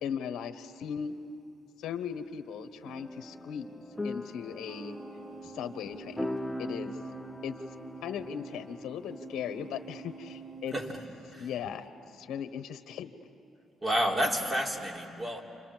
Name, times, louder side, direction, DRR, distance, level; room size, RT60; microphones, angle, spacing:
voice 1, 0.0-1.1 1.8-5.0 5.4-7.0 7.4-7.6 8.0-10.7 11.4-11.9 12.1-13.1, left 8 dB, 80° left, 8 dB, 1.1 m, -38 dB
sound 1, 1.5-1.6 4.3-11.8, right 6 dB, 50° right, 1.3 m, -49 dB
sound 2, 2.8-12.5, left 1 dB, 5° left, 0.7 m, -42 dB
voice 2, 10.7-11.5 13.8-15.4, equal, 25° right, 0 dB, 3.4 m, -31 dB
30.0 x 26.5 x 7.5 m, 2.7 s
cardioid pair, 90°, 0 cm